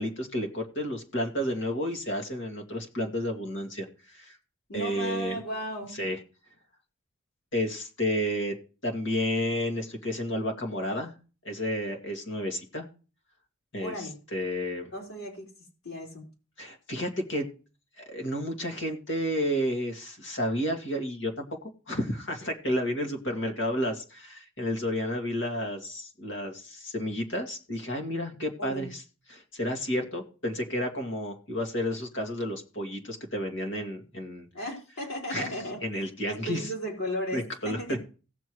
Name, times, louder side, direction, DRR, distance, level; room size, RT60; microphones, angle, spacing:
voice 1, 0.0-4.4 4.7-5.4 6.0-6.2 7.5-8.5 8.8-11.1 11.4-12.8 13.7-14.9 16.6-17.5 18.0-21.5 21.9-29.0 29.3-34.5 35.3-35.5 35.8-36.7 37.3-38.0, equal, 60° left, 3 dB, 2.2 m, -31 dB
voice 2, 4.7-5.9 13.8-14.1 14.9-15.5 15.8-16.2 28.6-28.9 34.5-35.8 36.3-38.0, equal, 90° left, -2 dB, 4.4 m, -35 dB
18.0 x 7.0 x 3.2 m, 0.36 s
head